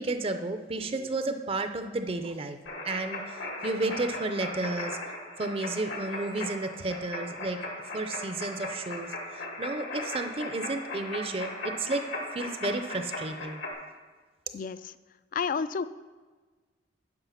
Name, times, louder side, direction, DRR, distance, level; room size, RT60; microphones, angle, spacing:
voice 1, 0.0-2.6 2.8-5.0 5.4-13.6, right 2 dB, 30° right, 8 dB, 0.5 m, -32 dB
sound 1, 2.7-13.7, left 2 dB, 80° left, 1.8 m, -38 dB
voice 2, 14.5-14.9 15.3-15.8, left 5 dB, 45° left, 14 dB, 0.3 m, -30 dB
9.7 x 5.2 x 5.7 m, 1.4 s
head